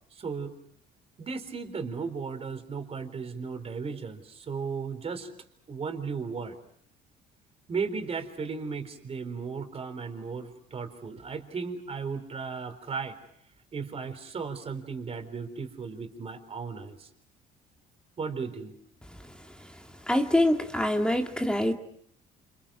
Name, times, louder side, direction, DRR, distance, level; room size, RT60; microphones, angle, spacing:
voice 1, 0.1-0.5 1.2-5.3 5.7-6.6 7.7-13.2 13.7-17.1 18.2-18.7, right 5 dB, 35° right, 7 dB, 4.2 m, -35 dB
voice 2, 20.1-21.7, left 1 dB, 5° left, 4 dB, 2.1 m, -24 dB
29.0 x 28.0 x 5.9 m, 0.67 s
cardioid pair, 110°, 17 cm